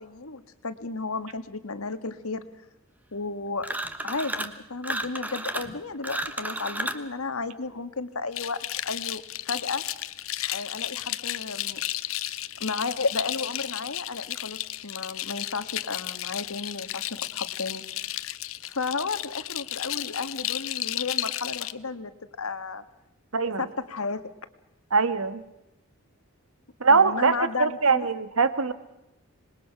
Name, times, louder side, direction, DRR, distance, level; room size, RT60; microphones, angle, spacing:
voice 1, 0.0-2.4 3.1-3.7 4.0-9.8 10.5-11.8 12.6-18.1 18.6-22.1 22.4-22.8 23.6-24.2 26.9-28.1, left 4 dB, 85° left, 11 dB, 1.7 m, -33 dB
sound 1, 3.6-4.6 4.8-7.1, right 1 dB, 10° right, 1.2 m, -32 dB
sound 2, 8.3-21.7, left 14 dB, 70° left, 0.8 m, -33 dB
voice 2, 23.3-23.6 24.9-25.4 26.8-27.3 27.6-28.7, right 4 dB, 80° right, 12 dB, 1.6 m, -22 dB
26.0 x 21.0 x 5.9 m, 0.90 s
head